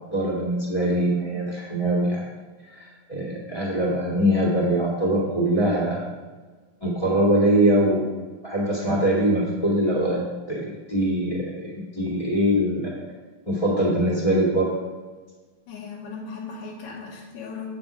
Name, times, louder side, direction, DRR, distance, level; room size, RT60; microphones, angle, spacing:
voice 1, 0.1-2.2 2.7-6.0 6.8-8.1 8.4-12.9 13.4-14.7, right 1 dB, 15° left, -5 dB, 1.4 m, -23 dB
voice 2, 15.7-17.8, left 4 dB, 70° left, -7 dB, 2.8 m, -37 dB
8.6 x 6.1 x 5.0 m, 1.4 s
omnidirectional pair, 4.0 m